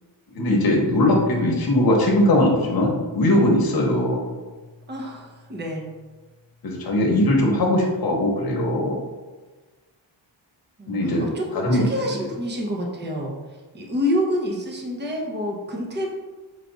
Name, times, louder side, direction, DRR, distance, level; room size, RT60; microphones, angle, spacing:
voice 1, 0.3-4.3 6.6-9.0 10.9-11.2 11.5-11.8, left 1 dB, 45° left, -1 dB, 1.0 m, -20 dB
Piano, 0.9-6.5, left 4 dB, 20° left, 0.5 m, -39 dB
voice 2, 4.9-5.9 10.8-16.1, left 1 dB, 20° right, 0 dB, 0.6 m, -28 dB
4.7 x 2.4 x 3.9 m, 1.3 s
wide cardioid pair, 160°, 49 cm